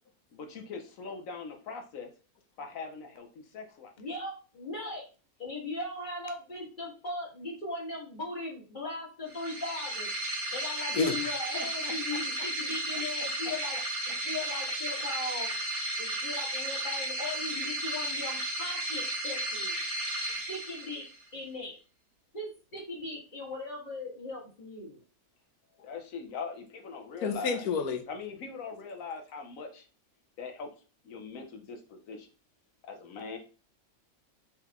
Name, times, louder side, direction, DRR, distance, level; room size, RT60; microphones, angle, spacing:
voice 1, 0.3-2.1 2.6-3.9 11.5-11.9 25.8-27.7 28.1-29.8 30.4-30.7 31.0-32.3 32.8-33.4, left 5 dB, 65° left, 5 dB, 1.2 m, -41 dB
voice 2, 4.0-5.0 5.4-10.1 10.5-13.8 14.1-15.5 16.0-19.8 20.5-21.0 21.3-21.7 22.3-25.0, left 2 dB, 30° left, -4 dB, 2.0 m, -38 dB
sound 1, 9.3-21.2, right 1 dB, 75° right, 1.9 m, -34 dB
voice 3, 27.2-28.0, left 5 dB, 85° left, 6 dB, 1.3 m, -28 dB
4.5 x 3.9 x 3.0 m, 0.35 s
omnidirectional pair, 1.5 m